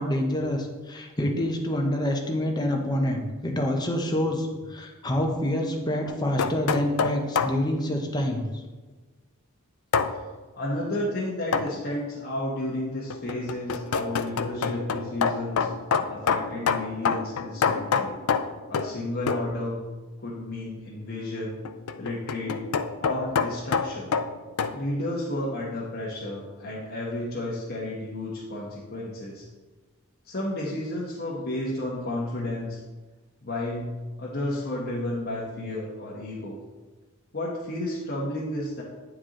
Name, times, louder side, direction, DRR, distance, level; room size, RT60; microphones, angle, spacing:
voice 1, 0.0-8.4, left 1 dB, 20° left, 2 dB, 0.9 m, -27 dB
sound 1, 6.1-7.6 9.9-10.2 11.5-11.8 13.1-19.0 19.3-19.5 21.6-24.8, left 6 dB, 85° left, 0.4 m, -27 dB
voice 2, 10.6-15.7 16.1-18.2 18.7-19.8 20.2-21.5 22.0-22.6 23.0-24.1 24.7-29.4 30.2-32.8 33.4-33.9 34.2-36.6 37.3-38.8, left 1 dB, 50° left, -6 dB, 1.2 m, -32 dB
9.2 x 4.6 x 3.8 m, 1.3 s
head